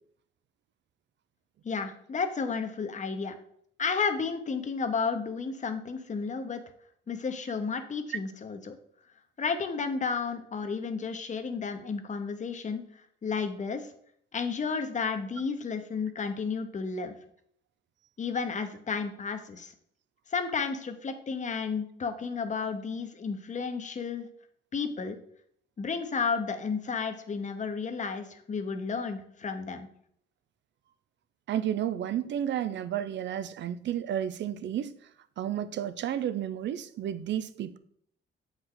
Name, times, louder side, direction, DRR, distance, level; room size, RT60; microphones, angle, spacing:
voice 1, 1.6-3.4 3.8-6.6 7.1-8.8 9.4-12.8 13.2-13.9 14.3-17.1 18.2-19.7 20.3-24.3 24.7-25.2 25.8-29.9, left 5 dB, 40° left, 1.0 m, -32 dB
voice 2, 31.5-34.9 35.4-37.8, right 10 dB, 65° right, 0.6 m, -32 dB
7.8 x 4.8 x 3.9 m
cardioid pair, 90°, 20 cm